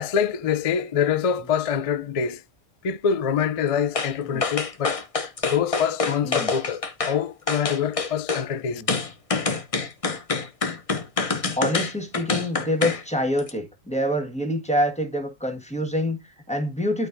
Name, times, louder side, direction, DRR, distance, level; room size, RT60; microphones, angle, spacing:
voice 1, 0.0-2.4 2.8-5.0 5.4-8.8, left 7 dB, 55° left, 0.4 m, -25 dB
sound 1, 3.9-4.1 4.4-7.2 7.5-8.4 8.9-13.0 13.4-13.5, left 4 dB, 30° left, 0.8 m, -26 dB
voice 2, 11.6-17.1, equal, 5° left, 1.5 m, -26 dB
11.5 x 4.7 x 2.6 m
omnidirectional pair, 1.4 m